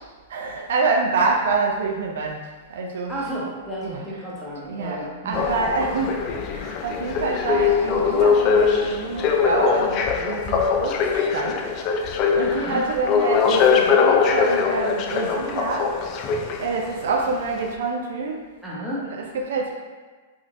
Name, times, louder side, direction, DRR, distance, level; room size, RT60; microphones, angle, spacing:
voice 1, 0.3-3.2 3.8-4.0 4.7-5.0 5.2-11.7 12.3-15.9 16.6-18.4 19.0-19.7, right 4 dB, 70° right, 0 dB, 0.4 m, -26 dB
voice 2, 3.1-5.5 12.5-12.8 18.6-19.1, right 1 dB, ahead, -8 dB, 1.0 m, -32 dB
sound 1, 5.3-16.9 17.6-17.7, left 6 dB, 40° left, 0.3 m, -22 dB
3.6 x 2.4 x 2.4 m, 1.4 s
hypercardioid pair, 115°, 0 cm